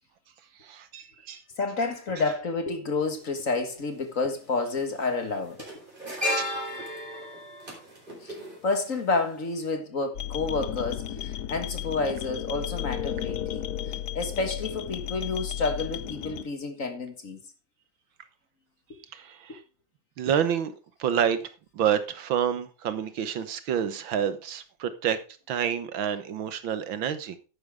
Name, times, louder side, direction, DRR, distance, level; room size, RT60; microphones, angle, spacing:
voice 1, 0.6-1.4 6.4-6.5 19.1-19.6 20.2-20.7 21.0-21.5 21.7-25.2 25.5-27.4, right 8 dB, 80° right, 1.9 m, -28 dB
voice 2, 1.6-5.7 8.2-8.4 8.6-17.4, left 3 dB, 45° left, 1.8 m, -30 dB
sound 1, 3.1-3.2 4.4-4.7 4.9-9.2 9.5-9.7, left 1 dB, 25° right, 4.6 m, -34 dB
sound 2, 10.1-16.4, left 11 dB, 65° left, 1.2 m, -34 dB
11.5 x 9.2 x 3.5 m
omnidirectional pair, 2.2 m